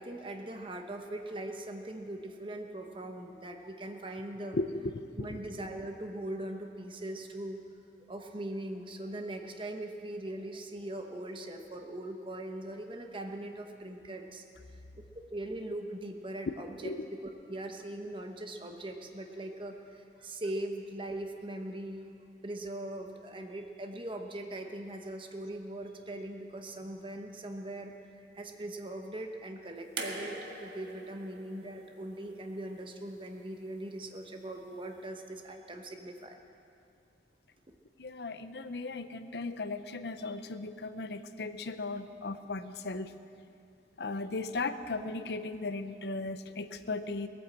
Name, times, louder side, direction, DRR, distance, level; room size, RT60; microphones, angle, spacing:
voice 1, 0.0-4.6 5.1-7.6 8.1-14.4 15.3-16.9 17.5-22.1 22.4-36.4, right 1 dB, 30° right, 4 dB, 1.0 m, -40 dB
voice 2, 5.0-5.4 16.5-16.6 16.8-17.0 38.0-43.1 44.0-47.3, left 3 dB, 65° left, 10 dB, 0.6 m, -37 dB
sound 1, 30.0-33.1 34.3-34.4, right 3 dB, 70° right, 1.5 m, -43 dB
19.0 x 9.0 x 7.5 m, 2.5 s
head